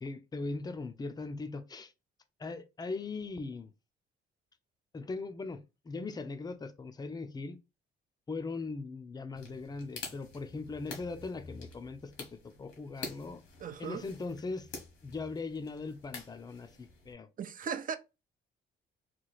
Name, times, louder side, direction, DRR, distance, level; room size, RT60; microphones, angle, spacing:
voice 1, 0.0-1.9 2.4-3.7 4.9-7.6 8.3-12.3 12.6-13.4 13.8-14.7 15.0-17.3, left 3 dB, 20° left, 0.5 m, -39 dB
sound 1, 9.4-17.1, left 4 dB, 80° left, 1.3 m, -48 dB
voice 2, 13.6-14.0 17.4-18.0, right 7 dB, 45° right, 0.5 m, -37 dB
3.1 x 2.3 x 3.9 m
cardioid pair, 90°, 20 cm